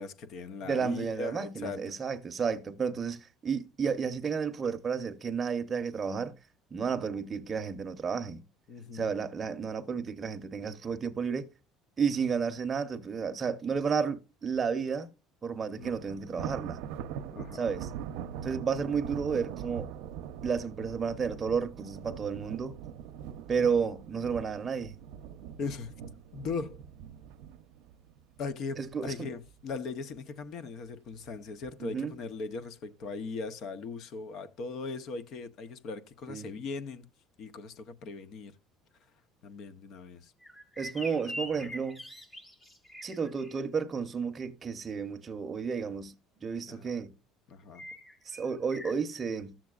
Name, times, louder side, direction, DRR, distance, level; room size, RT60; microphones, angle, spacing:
voice 1, 0.0-1.9 8.7-9.1 15.7-15.9 17.3-17.7 25.6-25.9 26.3-26.8 28.4-37.0 37.4-38.5 39.4-40.3 41.6-41.7 46.7-46.9 47.5-47.8, left 4 dB, 50° left, 0.8 m, -39 dB
voice 2, 0.6-6.4 6.7-8.4 8.9-11.5 12.0-15.1 15.4-16.8 17.5-17.9 18.4-19.9 20.4-22.8 23.5-24.9 28.8-29.3 31.8-32.1 36.3-36.5 40.8-42.0 43.0-46.1 46.4-47.1 48.3-49.5, right 6 dB, 25° right, 0.8 m, -32 dB
Thunder, 15.8-29.1 29.5-29.8 30.2-30.3 31.1-31.7, right 9 dB, 85° right, 0.6 m, -42 dB
sound 1, 40.4-43.5 47.7-48.9, equal, 10° left, 1.1 m, -43 dB
13.5 x 7.4 x 2.4 m
cardioid pair, 145°, 0 cm